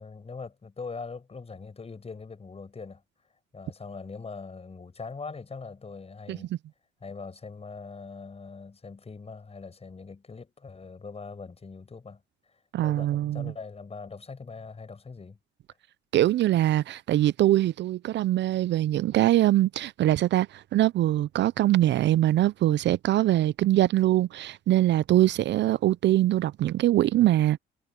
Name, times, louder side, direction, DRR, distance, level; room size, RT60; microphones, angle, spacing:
voice 1, 0.0-3.0 3.5-6.5 7.0-12.2 12.8-15.4, left 4 dB, 30° left, 5.2 m, -41 dB
voice 2, 12.7-13.5 16.1-27.6, right 14 dB, 65° right, 0.4 m, -23 dB
cardioid pair, 90°, 20 cm